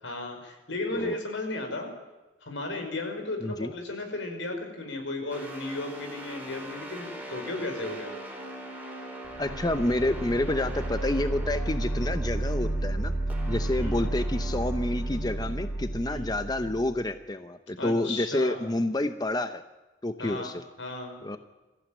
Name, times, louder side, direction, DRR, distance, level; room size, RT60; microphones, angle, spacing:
voice 1, 0.0-1.9 2.5-8.1 13.8-14.0 16.1-16.3 17.8-18.6 20.2-21.2, left 2 dB, 80° left, 4 dB, 5.4 m, -35 dB
sound 1, 5.3-15.9, right 1 dB, 10° right, 4.5 m, -42 dB
sound 2, 9.2-17.0, right 1 dB, 55° left, 7.2 m, -31 dB
voice 2, 9.4-13.1 13.5-19.6 20.0-20.6 21.2-21.4, left 1 dB, 20° left, 9 dB, 0.7 m, -29 dB
23.0 x 15.0 x 9.0 m, 1.1 s
head